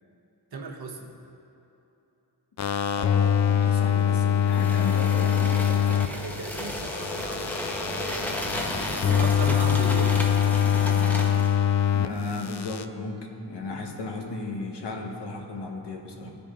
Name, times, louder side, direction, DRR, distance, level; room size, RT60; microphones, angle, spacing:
voice 1, 0.5-1.1 5.4-7.5 8.9-10.4 16.2-16.3, right 3 dB, 60° right, 1 dB, 1.1 m, -37 dB
sound 1, 2.6-6.1 6.4-12.1 12.4-12.8, left 9 dB, 45° left, 0.4 m, -24 dB
voice 2, 3.0-6.1 11.9-16.3, left 3 dB, 70° left, 1 dB, 1.1 m, -35 dB
sound 2, 4.5-11.6, equal, 5° left, 1.0 m, -33 dB
14.5 x 5.0 x 2.5 m, 2.9 s
cardioid pair, 60°, 43 cm